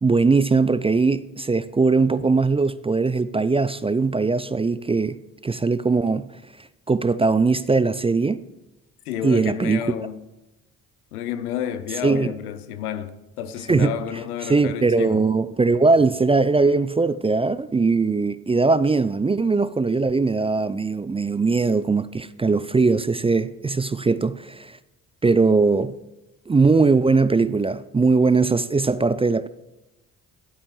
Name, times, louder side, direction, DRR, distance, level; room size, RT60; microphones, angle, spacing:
voice 1, 0.0-6.3 6.9-8.4 9.2-9.8 12.0-12.3 13.7-13.9 14.5-24.8 25.2-25.9 26.5-29.5, right 4 dB, 15° right, 0.4 m, -20 dB
voice 2, 9.0-10.2 11.1-15.3, left 9 dB, 85° left, 0.7 m, -30 dB
22.0 x 8.6 x 3.2 m
hypercardioid pair, 45°, 43 cm